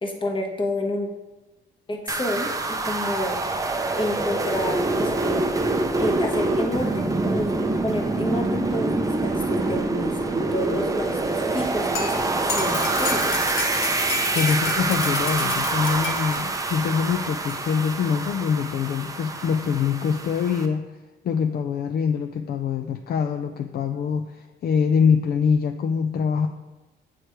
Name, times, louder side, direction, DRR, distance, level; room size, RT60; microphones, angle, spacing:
voice 1, 0.0-1.1 1.9-3.4 4.0-5.7 5.9-13.4, left 1 dB, 25° left, 1 dB, 1.2 m, -29 dB
sound 1, 2.1-20.7, right 2 dB, 15° right, 0.5 m, -25 dB
sound 2, 11.6-16.4 17.5-17.6, left 4 dB, 85° left, 0.9 m, -32 dB
voice 2, 14.3-21.0 21.2-26.5, left 6 dB, 50° left, 6 dB, 0.4 m, -24 dB
8.0 x 3.2 x 4.5 m, 1.1 s
cardioid pair, 90°, 20 cm